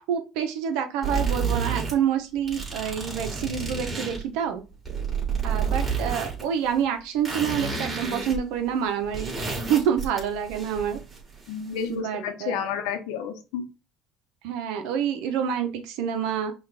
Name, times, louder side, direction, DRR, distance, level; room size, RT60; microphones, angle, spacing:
voice 1, 0.1-4.6 5.4-9.3 9.7-11.0 11.9-12.6 14.4-16.5, right 8 dB, 80° right, 7 dB, 0.8 m, -27 dB
sound 1, 1.0-1.9 2.4-4.2 4.7-6.4 6.7-6.8 7.2-8.4 8.6-8.7 9.0-11.4, right 5 dB, 30° right, 2.8 m, -29 dB
voice 2, 11.5-13.6, left 7 dB, 80° left, 7 dB, 0.9 m, -31 dB
5.5 x 2.5 x 3.3 m, 0.30 s
supercardioid pair, 90°, 0 cm